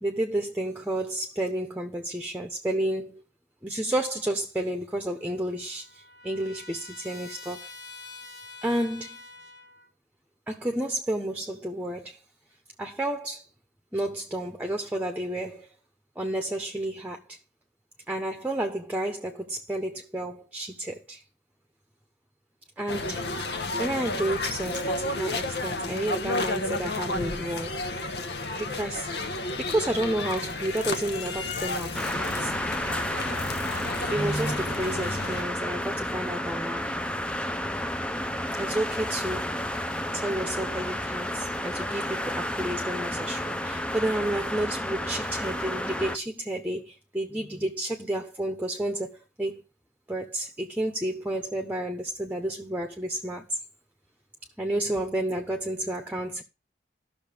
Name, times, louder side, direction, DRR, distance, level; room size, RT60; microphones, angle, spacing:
voice 1, 0.0-3.2 3.6-7.7 8.6-9.2 10.5-12.2 12.8-13.5 13.9-15.7 16.2-17.4 18.1-21.2 22.8-23.3 23.8-27.7 28.6-29.1 29.6-32.6 34.1-37.0 38.5-39.6 40.1-49.6 50.1-53.6 54.6-56.4, right 1 dB, 10° right, 1.1 m, -31 dB
Trumpet, 5.2-9.9, left 3 dB, 90° left, 2.9 m, -46 dB
sound 1, 22.9-35.4, left 2 dB, 70° left, 1.3 m, -32 dB
sound 2, 31.9-46.2, left 1 dB, 5° left, 0.7 m, -31 dB
12.5 x 6.5 x 5.2 m
head